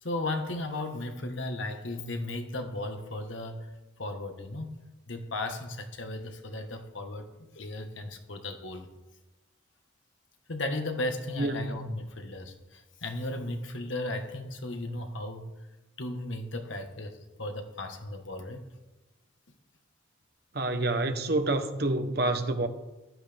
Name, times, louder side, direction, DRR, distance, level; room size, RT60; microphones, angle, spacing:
voice 1, 0.0-3.7 4.0-8.9 10.5-15.5 16.0-18.7, left 2 dB, 90° left, 1.5 m, -36 dB
voice 2, 11.4-11.9 20.5-22.7, right 2 dB, 55° right, 1.1 m, -28 dB
14.5 x 11.5 x 3.5 m
head